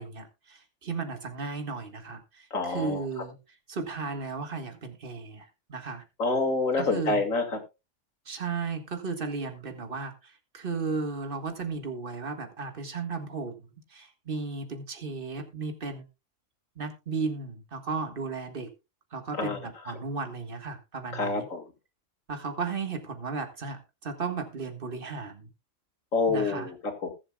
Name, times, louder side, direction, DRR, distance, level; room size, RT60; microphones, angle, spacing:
voice 1, 0.0-3.4 3.7-6.0 6.7-7.2 8.3-16.1 16.8-18.7 19.1-21.5 22.3-25.5 26.3-26.7, right 4 dB, 45° right, 7 dB, 1.8 m, -35 dB
voice 2, 2.5-3.0 6.2-7.6 19.4-19.6 21.1-21.6 26.1-27.1, left 3 dB, 85° left, 5 dB, 2.5 m, -27 dB
21.0 x 7.3 x 2.3 m, 0.25 s
omnidirectional pair, 1.4 m